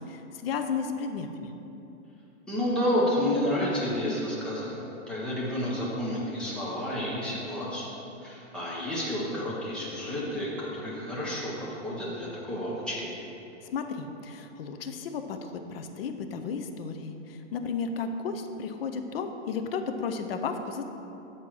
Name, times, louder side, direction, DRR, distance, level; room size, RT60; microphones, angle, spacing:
voice 1, 0.0-1.5 13.6-20.8, left 5 dB, 55° left, 7 dB, 0.7 m, -33 dB
voice 2, 2.5-7.9 8.2-11.5 11.8-13.2, left 1 dB, ahead, -7 dB, 0.5 m, -30 dB
7.6 x 4.2 x 6.1 m, 3.0 s
supercardioid pair, 170°, 36 cm